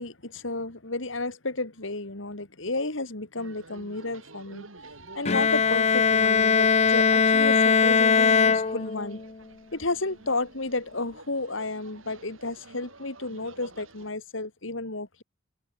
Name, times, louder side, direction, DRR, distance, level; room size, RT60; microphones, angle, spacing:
voice 1, 0.0-4.7 5.1-9.2 9.7-15.2, left 2 dB, 70° left, 2.7 m, -32 dB
sound 1, 3.4-14.1, right 2 dB, 80° right, 6.4 m, -50 dB
Bowed string instrument, 5.2-9.3, left 5 dB, 30° left, 0.5 m, -21 dB
open air
head